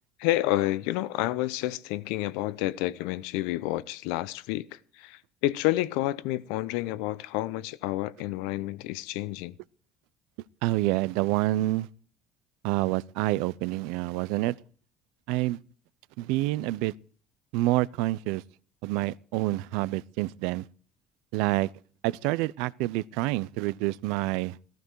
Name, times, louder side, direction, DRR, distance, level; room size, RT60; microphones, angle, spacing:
voice 1, 0.2-9.5, left 16 dB, 85° left, 0.8 m, -29 dB
voice 2, 10.6-11.9 12.6-14.5 15.3-15.6 16.2-16.9 17.5-18.4 18.8-20.6 21.3-21.7 22.0-24.6, right 18 dB, 85° right, 0.6 m, -27 dB
15.0 x 14.5 x 4.6 m
cardioid pair, 145°, 0 cm